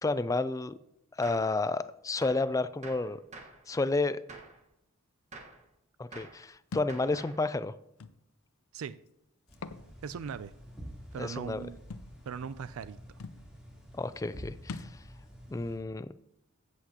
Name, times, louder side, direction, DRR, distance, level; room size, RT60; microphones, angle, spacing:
voice 1, 0.0-0.7 1.2-3.2 3.7-4.2 6.0-7.7 11.2-11.6 13.9-14.9 15.5-16.1, left 3 dB, 15° left, 14 dB, 0.3 m, -31 dB
Gunshot gunfire, 1.2-1.5 2.2-2.5 2.8-3.6 4.3-4.6 5.3-5.6 6.1-6.4 6.9-7.4, right 3 dB, 35° right, 1.4 m, -48 dB
Thump thud, 6.7-7.0 8.0-8.1 9.5-9.8 10.3-10.4 11.9-12.1 12.9-13.0 13.2-13.4 14.7-15.0, left 4 dB, 85° left, 0.5 m, -41 dB
sound 1, 9.5-15.8, equal, 5° right, 3.3 m, -49 dB
voice 2, 10.0-10.5 11.1-11.8 12.3-13.0, right 6 dB, 80° right, 15 dB, 0.4 m, -39 dB
15.0 x 8.2 x 2.9 m, 0.81 s
head